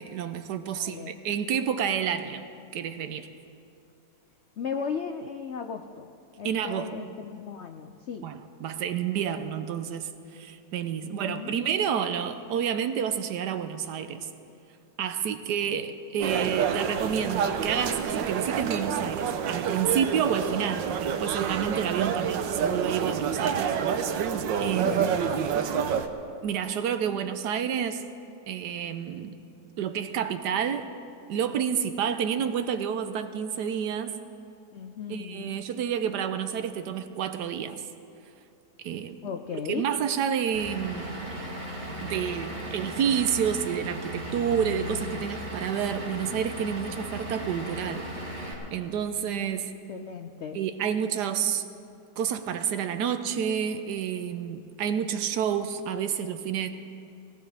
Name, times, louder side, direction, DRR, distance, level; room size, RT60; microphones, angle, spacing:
voice 1, 0.0-2.4 2.7-3.3 6.4-6.9 8.2-14.3 15.0-23.6 24.0-24.2 24.6-25.0 26.4-28.1 28.5-29.4 29.8-30.9 31.3-34.2 35.1-37.8 38.8-39.2 39.7-41.1 42.0-48.1 48.7-49.7 50.5-51.6 52.2-56.7, right 8 dB, 70° right, 9 dB, 1.3 m, -29 dB
voice 2, 0.7-1.1 4.6-6.1 6.4-8.3 11.0-11.6 15.6-15.8 24.8-25.4 32.4-32.5 34.7-35.6 39.2-39.8 49.9-50.6, left 6 dB, 85° left, 6 dB, 0.6 m, -36 dB
sound 1, 16.2-26.1, right 7 dB, 90° right, 1.5 m, -28 dB
Vehicle / Engine, 40.5-48.5, right 1 dB, 35° right, 3.1 m, -36 dB
19.0 x 18.5 x 3.4 m, 2.5 s
omnidirectional pair, 1.9 m